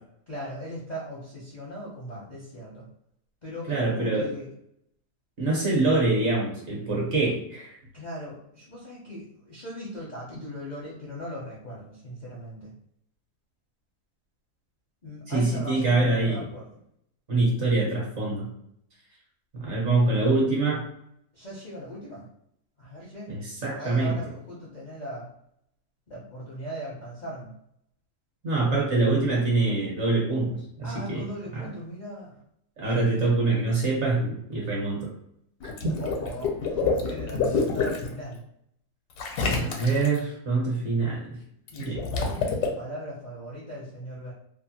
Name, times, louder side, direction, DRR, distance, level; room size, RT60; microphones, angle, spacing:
voice 1, 0.3-2.9 3.4-4.5 7.9-12.7 15.0-16.7 21.3-22.3 22.8-23.3 23.7-25.3 26.1-27.5 30.8-32.4 36.0-38.4 41.7-44.3, equal, 50° left, -6 dB, 0.5 m, -39 dB
voice 2, 3.7-4.3 5.4-7.7 15.3-16.4 17.3-18.5 19.5-20.8 23.3-24.2 28.4-31.3 31.5-31.7 32.8-35.1 35.8-35.9 39.5-41.4 41.8-42.0, right 3 dB, 55° right, -3 dB, 1.0 m, -25 dB
Water / Liquid, 35.6-38.1 39.2-40.2 41.7-42.7, left 4 dB, 80° left, 1.1 m, -27 dB
2.7 x 2.3 x 2.7 m, 0.72 s
omnidirectional pair, 1.6 m